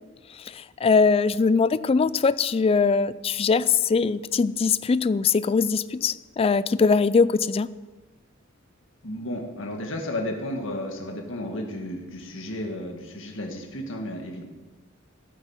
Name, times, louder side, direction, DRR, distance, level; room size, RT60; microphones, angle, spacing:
voice 1, 0.5-7.7, left 5 dB, 30° left, 17 dB, 0.3 m, -21 dB
voice 2, 9.0-14.4, left 1 dB, 70° left, 2 dB, 1.8 m, -33 dB
12.5 x 9.2 x 5.6 m, 1.3 s
head